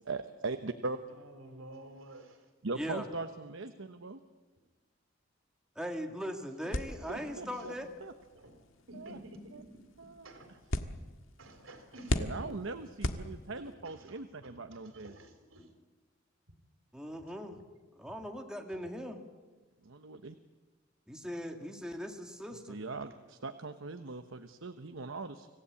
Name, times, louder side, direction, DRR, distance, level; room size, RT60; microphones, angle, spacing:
voice 1, 0.0-1.0 2.6-4.2 7.1-7.7 8.0-8.1 8.9-9.2 9.5-9.6 10.0-10.3 12.2-15.1 19.8-20.3 22.7-25.5, right 3 dB, 70° right, 8 dB, 1.0 m, -40 dB
voice 2, 1.1-2.5 7.2-7.8 8.3-8.6 8.9-10.6 11.4-12.8 13.2-15.7 23.0-23.1, right 1 dB, 90° right, 7 dB, 3.8 m, -52 dB
voice 3, 5.8-7.9 16.9-17.6 17.9-19.2 21.1-22.8, equal, 5° right, 3 dB, 2.1 m, -40 dB
sound 1, 6.7-13.8, left 1 dB, 80° left, 1.5 m, -39 dB
26.0 x 17.0 x 8.6 m, 1.3 s
head